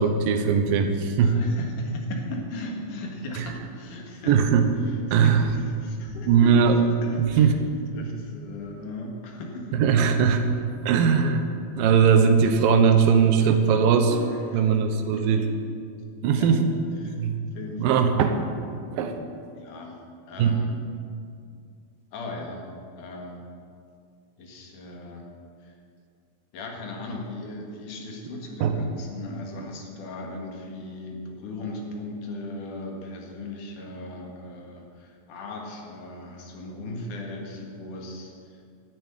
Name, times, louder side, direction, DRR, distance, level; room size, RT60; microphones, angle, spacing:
voice 1, 0.0-1.4 3.4-3.5 4.3-4.7 5.1-5.5 6.3-6.8 7.2-7.5 9.7-10.4 10.9-11.5 11.7-15.5 16.2-16.6 17.2-17.4 17.8-18.4 18.9-19.1 20.4-20.6 28.6-28.8, right 6 dB, 80° right, 6 dB, 2.6 m, -20 dB
voice 2, 1.2-4.4 4.9-6.5 7.0-7.5 7.9-9.8 14.5-14.6 15.1-15.5 16.4-16.5 17.0-17.2 17.5-18.1 19.6-20.0 20.3-20.7 22.1-22.7 23.0-23.4 24.4-25.3 25.6-25.7 26.5-38.3, left 1 dB, 65° left, 1 dB, 3.1 m, -37 dB
11.0 x 9.5 x 9.0 m, 2.3 s
omnidirectional pair, 4.1 m